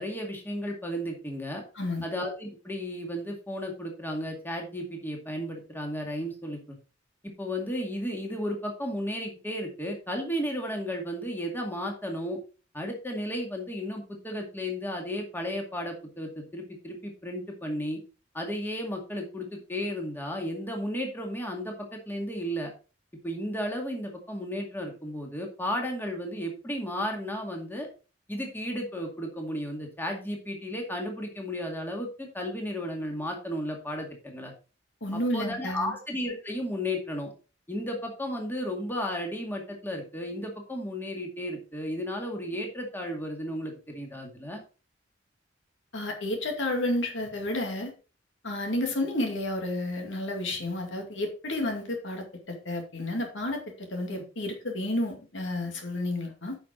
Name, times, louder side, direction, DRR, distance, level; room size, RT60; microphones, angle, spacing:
voice 1, 0.0-1.6 2.0-6.8 7.2-12.4 12.7-18.0 18.3-22.7 23.2-27.9 28.3-34.5 35.1-37.3 37.7-44.6 54.1-54.2, equal, 10° left, 1 dB, 2.1 m, -34 dB
voice 2, 35.0-35.9 45.9-47.9 48.4-56.6, left 1 dB, 80° left, 3 dB, 2.2 m, -31 dB
9.4 x 5.8 x 3.8 m, 0.34 s
head